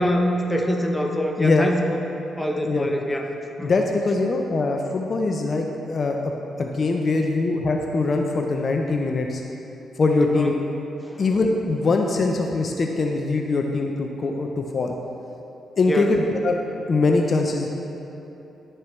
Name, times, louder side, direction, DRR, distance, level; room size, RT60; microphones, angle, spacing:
voice 1, 0.0-2.0 2.4-3.3 3.6-3.7 10.3-10.5 11.0-11.2 15.9-16.1, equal, 10° left, 2 dB, 0.8 m, -24 dB
voice 2, 1.4-1.7 2.6-2.9 3.6-6.2 6.6-9.4 10.0-10.5 11.2-14.9 15.8-16.6 16.9-17.7, left 3 dB, 50° left, 2 dB, 0.5 m, -22 dB
11.0 x 4.5 x 3.2 m, 3.0 s
supercardioid pair, 65°, 0 cm